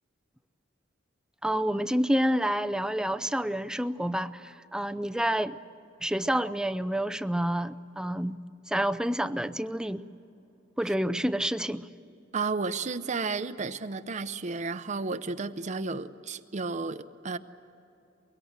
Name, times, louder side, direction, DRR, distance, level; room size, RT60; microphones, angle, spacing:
voice 1, 1.4-5.6 6.0-8.4 8.7-10.0 10.8-11.9, equal, 5° right, 12 dB, 0.5 m, -28 dB
voice 2, 12.3-17.4, right 4 dB, 40° right, 11 dB, 0.7 m, -32 dB
24.0 x 22.5 x 8.0 m, 2.9 s
head